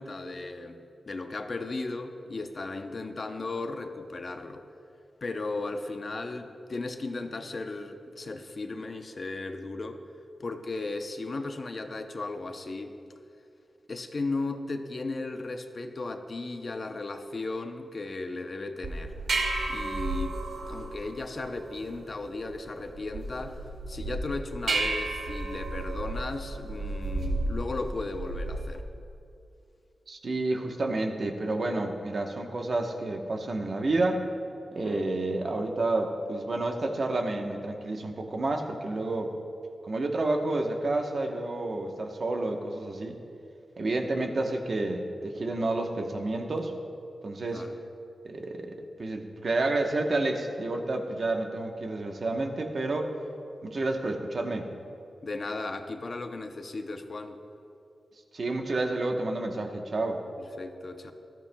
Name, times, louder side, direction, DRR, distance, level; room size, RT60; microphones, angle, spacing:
voice 1, 0.0-4.6 5.2-10.0 10.4-12.9 13.9-19.1 19.7-20.4 20.7-23.6 23.9-28.8 34.8-35.1 47.5-47.8 55.2-57.4 60.4-61.1, left 3 dB, 40° left, 6 dB, 0.7 m, -36 dB
sound 1, 18.8-28.8, right 2 dB, 80° right, 1.8 m, -33 dB
voice 2, 30.1-34.3 34.7-39.3 39.8-43.2 43.8-46.7 47.2-47.6 48.2-53.1 53.6-54.7 58.3-60.2, right 2 dB, 45° right, 3 dB, 1.0 m, -30 dB
19.5 x 14.0 x 2.3 m, 2.6 s
wide cardioid pair, 155°, 0 cm